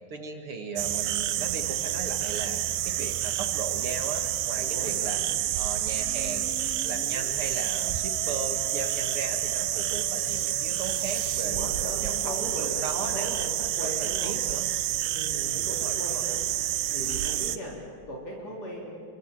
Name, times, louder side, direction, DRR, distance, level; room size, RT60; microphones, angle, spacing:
voice 1, 0.1-5.2 5.5-13.3 13.8-14.7 15.3-16.3, right 4 dB, 45° right, 4 dB, 2.3 m, -37 dB
sound 1, 0.8-17.6, right 13 dB, 90° right, 2.5 m, -29 dB
voice 2, 4.6-5.2 11.4-13.5 13.8-14.4 15.0-16.4 16.9-18.9, equal, 50° left, -3 dB, 4.9 m, -38 dB
Musical instrument, 5.9-13.9, left 9 dB, 80° left, 1.4 m, -45 dB
29.0 x 23.5 x 7.6 m, 2.2 s
omnidirectional pair, 3.8 m